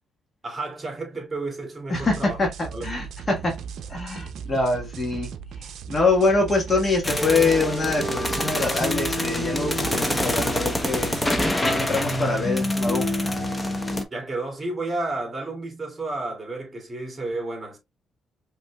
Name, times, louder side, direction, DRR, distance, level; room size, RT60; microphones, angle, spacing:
voice 1, 0.4-2.4 2.7-3.0 14.1-17.8, right 2 dB, 25° right, 2.4 m, -31 dB
voice 2, 1.9-3.6 3.9-5.3 5.6-11.2 11.6-13.1, left 3 dB, 35° left, 1.4 m, -24 dB
sound 1, 1.9-11.5, right 6 dB, 70° right, 0.5 m, -37 dB
sound 2, 7.0-14.0, left 1 dB, 15° left, 0.9 m, -25 dB
5.1 x 3.1 x 2.3 m
cardioid pair, 90°, 0 cm